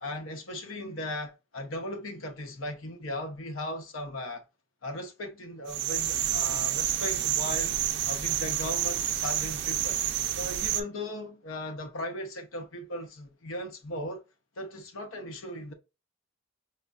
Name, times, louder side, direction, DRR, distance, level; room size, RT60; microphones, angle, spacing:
voice 1, 0.0-4.4 4.8-7.8 8.1-10.0 10.3-14.2 14.6-15.7, left 1 dB, 90° left, 0.8 m, -37 dB
sound 1, 5.7-10.8, right 11 dB, 60° right, 0.4 m, -29 dB
5.2 x 2.1 x 2.3 m
head